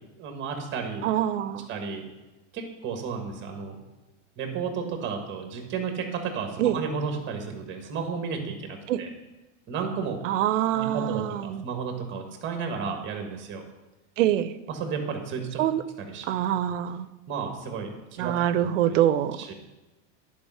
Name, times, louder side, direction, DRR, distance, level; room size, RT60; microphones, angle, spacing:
voice 1, 0.2-1.1 1.4-2.0 2.5-3.8 4.4-9.1 9.7-10.2 10.7-13.6 14.7-15.6 16.0-16.3 17.3-18.3 18.6-19.0 19.3-19.5, right 5 dB, 30° right, 4 dB, 1.6 m, -33 dB
voice 2, 1.0-1.7 6.6-6.8 8.9-9.0 10.2-11.6 14.2-14.5 15.6-15.8 16.2-17.1 18.2-19.4, right 11 dB, 90° right, 14 dB, 0.6 m, -25 dB
10.5 x 5.2 x 5.6 m, 1.1 s
supercardioid pair, 140°, 36 cm